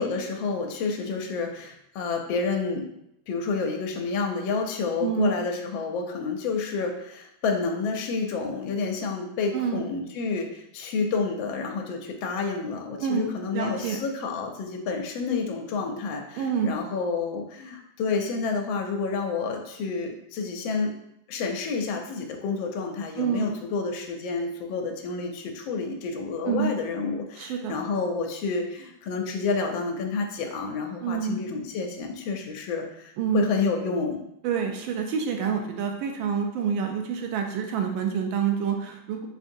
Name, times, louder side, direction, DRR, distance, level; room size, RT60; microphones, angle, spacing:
voice 1, 0.0-2.9 3.3-20.9 21.3-34.2, left 4 dB, 80° left, 3 dB, 1.3 m, -29 dB
voice 2, 5.0-5.3 9.5-9.8 13.0-14.0 16.4-16.7 23.2-23.6 26.4-26.7 27.4-27.8 31.0-31.4 33.2-33.5 34.4-39.3, right 7 dB, 85° right, 3 dB, 1.4 m, -27 dB
5.1 x 2.7 x 2.6 m, 0.78 s
omnidirectional pair, 2.2 m